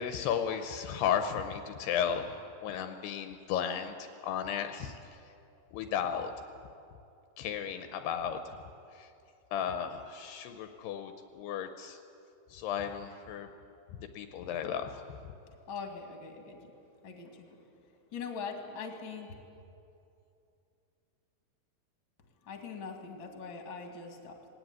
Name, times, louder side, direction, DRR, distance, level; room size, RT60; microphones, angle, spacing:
voice 1, 0.0-2.4 2.6-5.0 5.7-6.3 7.4-8.6 9.0-9.1 9.5-12.0 12.5-13.5 14.2-14.9, left 8 dB, 75° left, 7 dB, 2.8 m, -34 dB
voice 2, 15.7-16.7 17.0-17.7 18.1-19.4 22.4-24.4, left 5 dB, 35° left, 3 dB, 2.3 m, -42 dB
20.0 x 17.5 x 9.5 m, 2.6 s
omnidirectional pair, 4.9 m